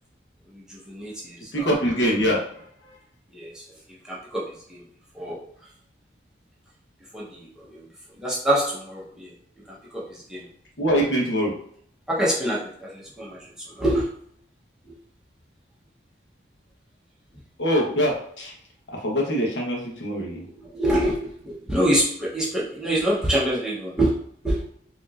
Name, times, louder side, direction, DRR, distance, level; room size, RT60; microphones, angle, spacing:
voice 1, 0.5-1.7 3.3-3.6 4.0-4.4 4.7-4.8 5.1-5.4 7.1-7.9 8.2-9.3 9.7-10.5 12.1-14.1 14.9-15.0 20.7-24.1 24.4-24.7, right 1 dB, 5° right, -7 dB, 0.9 m, -26 dB
voice 2, 1.5-2.9 10.8-11.5 17.6-18.5 18.9-20.4, equal, 80° left, -2 dB, 1.1 m, -24 dB
4.4 x 2.9 x 2.5 m, 0.64 s
head